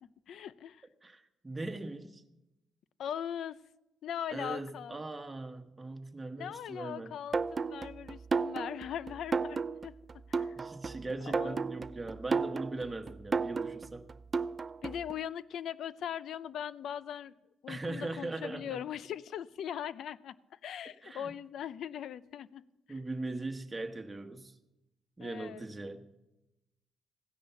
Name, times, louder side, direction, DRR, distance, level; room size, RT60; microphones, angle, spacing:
voice 1, 0.0-0.8 3.0-3.6 4.0-5.0 6.3-10.6 11.2-11.6 14.8-17.3 17.6-20.4 20.6-23.0 25.2-25.7, left 9 dB, 70° left, 0.5 m, -40 dB
voice 2, 1.0-2.2 4.3-7.1 10.6-14.1 17.7-18.8 21.0-21.3 22.9-24.5 25.2-26.1, right 2 dB, 20° right, 1.3 m, -40 dB
sound 1, 7.3-15.1, right 4 dB, 35° right, 0.4 m, -34 dB
15.5 x 10.0 x 6.9 m
cardioid pair, 90°, 0 cm